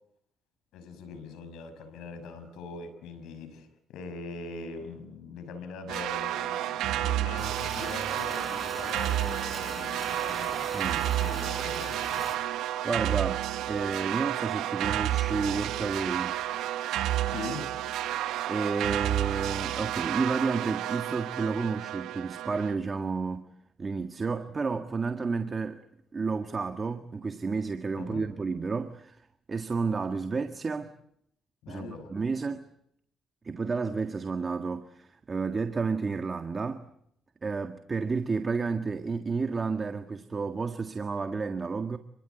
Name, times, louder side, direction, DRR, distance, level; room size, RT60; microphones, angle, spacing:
voice 1, 0.7-12.3 17.3-17.7 28.0-28.2 31.6-32.1, left 3 dB, 90° left, 5.9 m, -42 dB
sound 1, 5.9-22.7, right 13 dB, 90° right, 1.1 m, -31 dB
sound 2, 7.4-12.4, right 1 dB, 5° right, 8.0 m, -40 dB
voice 2, 10.7-11.1 12.8-16.4 18.5-23.5 23.8-25.8 26.1-29.2 29.5-30.9 31.7-32.7 33.4-36.9 37.4-42.0, right 4 dB, 35° right, 1.7 m, -31 dB
28.0 x 22.5 x 8.3 m
cardioid pair, 90°, 0 cm